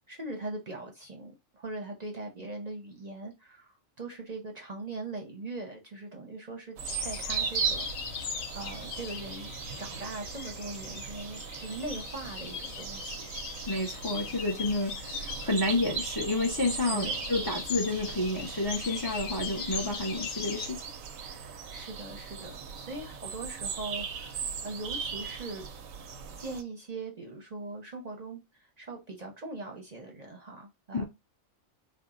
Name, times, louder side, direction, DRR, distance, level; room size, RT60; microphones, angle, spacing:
voice 1, 0.1-7.9 8.5-13.3 16.9-17.2 21.4-25.7 26.4-31.0, right 2 dB, 40° right, 0.7 m, -41 dB
sound 1, 6.8-20.7, left 6 dB, 80° left, 1.0 m, -40 dB
sound 2, 6.8-26.6, right 7 dB, 85° right, 1.0 m, -38 dB
voice 2, 13.7-20.8 30.9-31.0, left 2 dB, 25° left, 0.5 m, -30 dB
4.4 x 2.0 x 3.7 m
omnidirectional pair, 1.3 m